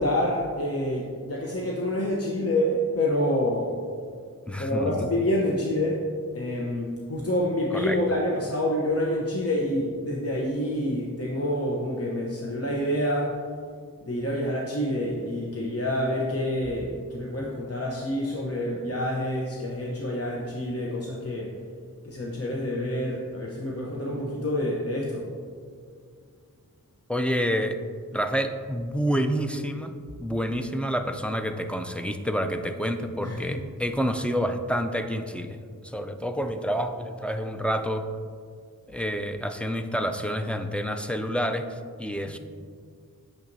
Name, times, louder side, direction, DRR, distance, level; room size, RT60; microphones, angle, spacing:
voice 1, 0.0-3.8 4.6-6.1 6.3-13.4 14.0-21.6 22.0-25.3 33.2-33.6, left 1 dB, 40° left, -3 dB, 0.8 m, -27 dB
voice 2, 4.5-5.1 7.7-8.0 27.1-27.8 28.1-29.9 30.2-35.6 35.8-38.1 38.9-42.4, equal, 5° left, 5 dB, 0.4 m, -28 dB
8.7 x 6.4 x 2.6 m, 2.1 s
wide cardioid pair, 55°, 35 cm